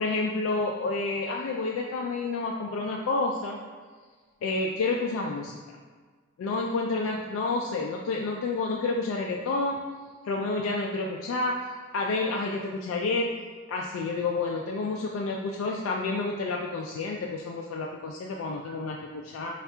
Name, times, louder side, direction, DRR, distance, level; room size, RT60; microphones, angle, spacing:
voice 1, 0.0-3.6 4.4-5.6 6.4-9.9 10.2-11.6 11.9-13.3 13.7-19.5, left 3 dB, 80° left, 0 dB, 0.3 m, -29 dB
4.2 x 2.4 x 3.3 m, 1.5 s
head